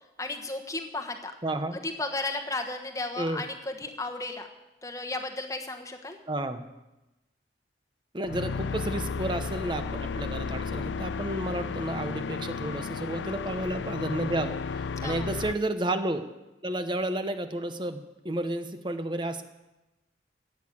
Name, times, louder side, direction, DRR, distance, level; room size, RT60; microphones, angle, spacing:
voice 1, 0.2-1.3 1.8-4.5 4.8-6.2 15.0-15.3, left 2 dB, 20° left, 5 dB, 1.2 m, -34 dB
voice 2, 1.4-1.8 3.2-3.4 6.3-6.7 8.1-16.2 16.6-19.4, right 1 dB, 25° right, 9 dB, 0.9 m, -31 dB
sound 1, 8.2-15.5, left 5 dB, 90° left, 0.4 m, -33 dB
15.5 x 8.5 x 8.6 m, 1.0 s
head